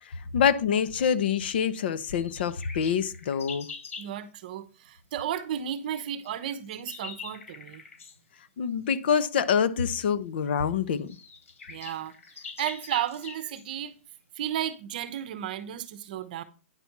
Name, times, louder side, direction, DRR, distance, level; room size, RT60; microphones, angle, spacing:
voice 1, 0.0-3.7 8.6-11.1, left 7 dB, 50° left, 0.8 m, -26 dB
sound 1, 2.1-4.1 6.2-8.2 10.0-10.1 10.7-10.8 11.0-13.7, left 5 dB, 85° left, 3.6 m, -44 dB
voice 2, 4.0-7.8 11.7-13.9 14.3-16.4, right 10 dB, 40° right, 0.9 m, -33 dB
9.8 x 4.2 x 5.9 m
hypercardioid pair, 175°, 7 cm